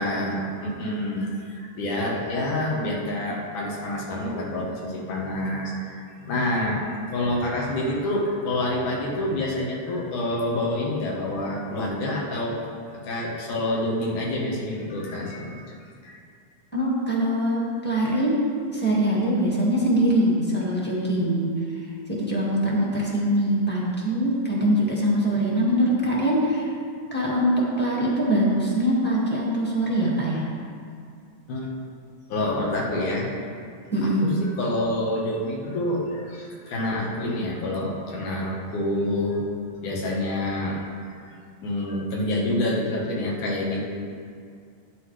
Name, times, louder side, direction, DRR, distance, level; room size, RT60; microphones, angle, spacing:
voice 1, 0.0-12.6 12.9-16.2 31.5-31.8 32.3-33.3 34.0-39.4 39.8-41.4 41.6-43.8, left 1 dB, 80° left, -3 dB, 2.9 m, -27 dB
voice 2, 16.7-18.4 18.7-21.5 22.1-26.7 27.1-30.5 33.9-34.3, equal, 5° left, -5 dB, 1.0 m, -23 dB
12.0 x 9.7 x 3.3 m, 2.3 s
omnidirectional pair, 3.5 m